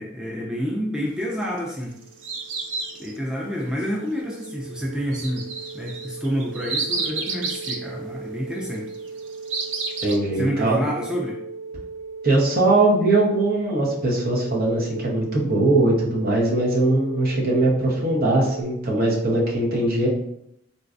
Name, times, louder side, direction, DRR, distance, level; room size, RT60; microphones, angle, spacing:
voice 1, 0.0-2.0 3.0-8.9 10.3-11.4, equal, 5° right, -3 dB, 0.3 m, -28 dB
sound 1, 1.6-3.2 5.1-7.8 9.0-10.2, right 4 dB, 75° right, 0.4 m, -30 dB
sound 2, 1.7-18.6, right 4 dB, 15° left, 0.7 m, -38 dB
voice 2, 10.0-10.8 12.2-20.1, right 2 dB, 50° right, -3 dB, 0.8 m, -21 dB
3.9 x 2.2 x 2.5 m, 0.77 s
head